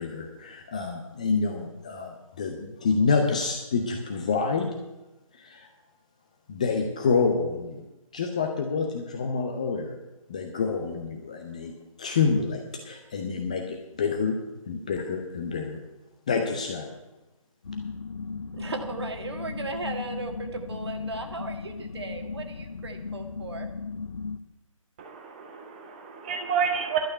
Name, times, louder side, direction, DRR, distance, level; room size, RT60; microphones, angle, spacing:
voice 1, 0.0-4.7 5.3-5.7 6.5-7.8 8.1-10.0 10.3-11.7 12.0-14.4 14.7-15.8 16.3-16.9, left 5 dB, 10° left, 3 dB, 0.5 m, -27 dB
sound 1, 17.6-24.4, left 4 dB, 50° left, 0.7 m, -36 dB
voice 2, 18.5-23.7, right 3 dB, 50° right, 6 dB, 1.6 m, -36 dB
voice 3, 25.0-27.0, right 7 dB, 20° right, 3 dB, 0.8 m, -29 dB
11.5 x 6.4 x 9.4 m, 1.0 s
figure-of-eight pair, 150°, 18 cm